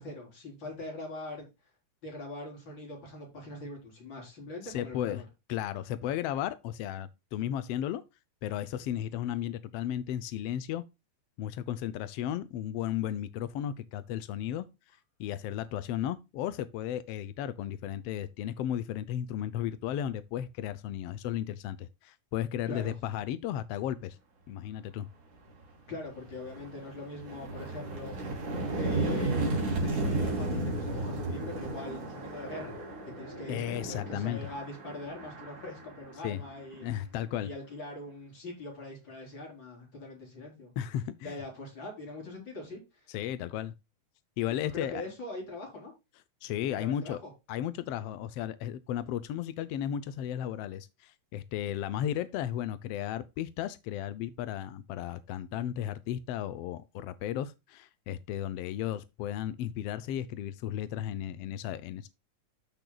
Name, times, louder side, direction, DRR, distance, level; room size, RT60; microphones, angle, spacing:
voice 1, 0.0-1.5 2.0-5.2 22.7-23.0 25.9-28.2 28.8-29.5 29.8-32.8 33.2-36.9 37.4-40.7 41.2-42.8 44.6-45.9 46.6-47.3, left 2 dB, 40° left, 4.7 m, -42 dB
voice 2, 4.6-5.2 5.5-8.0 8.4-10.8 11.4-14.7 15.2-24.2 24.5-25.1 33.5-34.5 36.2-36.4 36.8-37.5 40.8-41.4 43.1-43.7 44.4-45.0 46.4-47.2 47.5-62.1, left 11 dB, 80° left, 1.4 m, -34 dB
sound 1, 25.5-25.6 26.1-36.8, right 2 dB, 75° right, 4.6 m, -34 dB
13.5 x 6.2 x 2.3 m
omnidirectional pair, 3.4 m